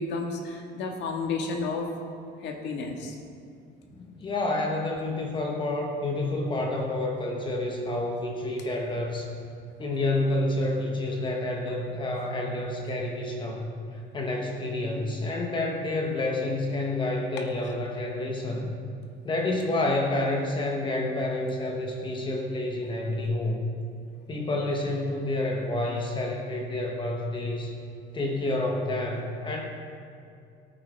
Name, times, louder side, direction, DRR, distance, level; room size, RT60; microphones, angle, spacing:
voice 1, 0.0-1.9 2.4-3.2 17.6-17.7, left 3 dB, 70° left, 2 dB, 1.6 m, -32 dB
voice 2, 4.0-9.3 9.8-18.7 19.2-23.7 24.3-27.7 28.1-29.6, left 2 dB, 25° left, 1 dB, 1.1 m, -29 dB
17.5 x 9.2 x 3.4 m, 2.4 s
cardioid pair, 170°, 20 cm